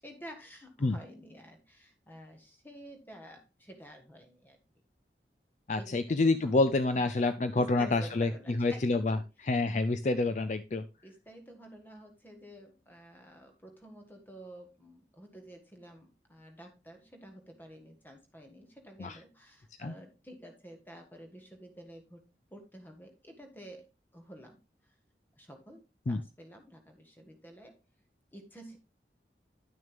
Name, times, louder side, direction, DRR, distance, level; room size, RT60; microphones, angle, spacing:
voice 1, 0.0-4.6 5.8-6.5 6.9-9.5 11.0-23.9 24.1-24.9 25.4-27.8 28.3-28.8, equal, 10° left, 4 dB, 1.4 m, -51 dB
voice 2, 5.7-10.8 19.0-19.2 19.8-19.9 26.1-26.2, left 2 dB, 40° left, 11 dB, 0.4 m, -28 dB
10.5 x 6.4 x 3.4 m, 0.28 s
head